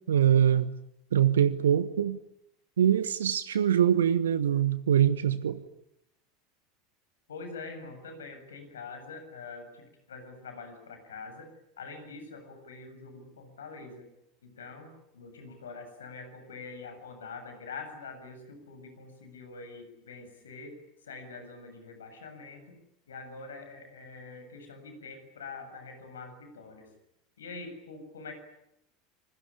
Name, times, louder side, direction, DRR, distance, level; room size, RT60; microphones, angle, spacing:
voice 1, 0.1-0.7 1.1-2.2 2.8-5.6, right 9 dB, 70° right, 15 dB, 1.1 m, -23 dB
voice 2, 7.3-11.5 11.8-14.1 14.4-20.8 21.0-22.8 23.1-26.9 27.4-28.3, left 4 dB, 75° left, 7 dB, 7.5 m, -44 dB
27.5 x 21.5 x 10.0 m, 0.81 s
figure-of-eight pair, 80°, 0 cm